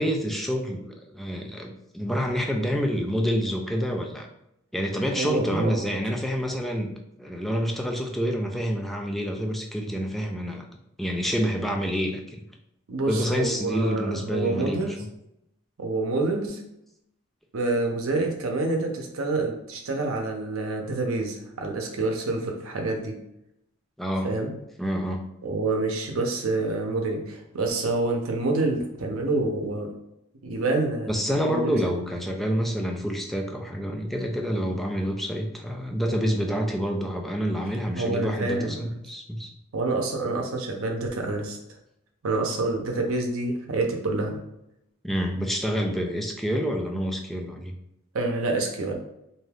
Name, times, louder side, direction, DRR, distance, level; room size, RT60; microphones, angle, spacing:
voice 1, 0.0-4.3 4.7-6.9 7.2-10.7 11.0-12.2 13.1-14.8 24.0-24.3 24.8-25.2 31.1-39.5 45.0-47.7, equal, ahead, 2 dB, 0.3 m, -27 dB
voice 2, 5.2-5.9 12.9-15.0 15.8-16.6 17.5-23.1 24.2-24.5 25.4-29.9 30.4-31.1 31.4-31.7 37.9-38.8 39.7-41.6 42.2-44.4 48.1-48.9, right 2 dB, 90° right, 2 dB, 0.6 m, -27 dB
2.6 x 2.3 x 3.3 m, 0.82 s
head